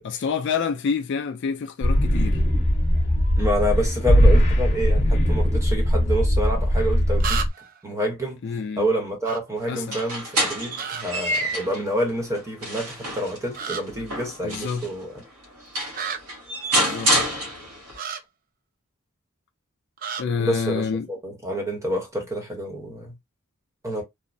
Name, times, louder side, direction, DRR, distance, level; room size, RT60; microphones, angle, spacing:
voice 1, 0.0-2.4 8.4-8.9 9.7-10.0 14.0-14.1 14.4-14.9 16.7-17.2 20.2-21.1, left 6 dB, 50° left, 0.3 m, -28 dB
sound 1, 1.8-7.5, equal, 35° left, 0.9 m, -19 dB
voice 2, 3.4-7.4 7.8-8.4 8.8-15.2 20.4-23.1 23.8-24.0, equal, 15° right, 0.9 m, -28 dB
sound 2, 6.1-6.2 7.2-7.8 9.2-9.4 10.7-11.0 13.5-13.8 15.9-16.2 17.9-18.2 20.0-20.2, right 7 dB, 40° right, 0.3 m, -30 dB
sound 3, 9.8-11.8 12.3-14.9 15.4-15.5 15.7-18.0, right 1 dB, 85° right, 1.2 m, -27 dB
3.0 x 2.0 x 2.5 m
head